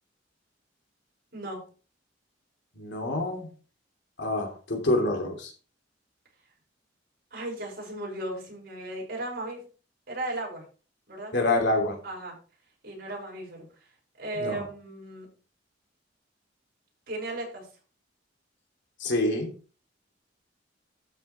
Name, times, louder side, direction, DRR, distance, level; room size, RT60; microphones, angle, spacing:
voice 1, 2.8-3.5 4.2-5.5 11.3-12.0 14.4-14.6 19.0-19.5, left 2 dB, 70° left, 2 dB, 2.9 m, -26 dB
voice 2, 7.3-9.6 10.1-10.6 11.1-11.3 12.0-12.4 12.8-13.7 14.2-15.3 17.1-17.7, right 1 dB, 55° right, -2 dB, 6.3 m, -35 dB
13.0 x 7.0 x 3.4 m, 0.37 s
head